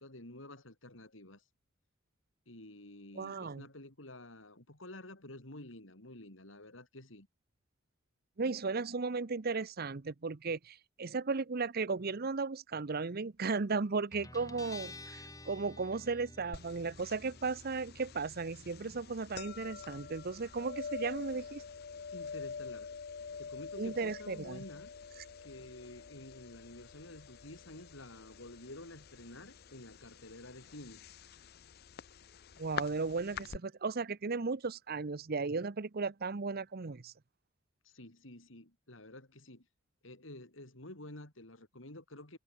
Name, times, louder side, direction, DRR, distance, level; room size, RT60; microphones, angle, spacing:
voice 1, 0.0-1.4 2.5-7.3 22.1-22.9 23.4-24.9 25.4-31.0 37.8-39.6 40.0-42.4, left 1 dB, 80° left, 4.9 m, -50 dB
voice 2, 3.2-3.6 8.4-21.6 23.8-24.6 32.6-37.1, right 4 dB, 50° right, 0.8 m, -35 dB
Guitar, 14.1-31.3, left 2 dB, 20° left, 3.0 m, -56 dB
sound 1, 16.5-33.6, left 6 dB, 55° left, 0.6 m, -47 dB
head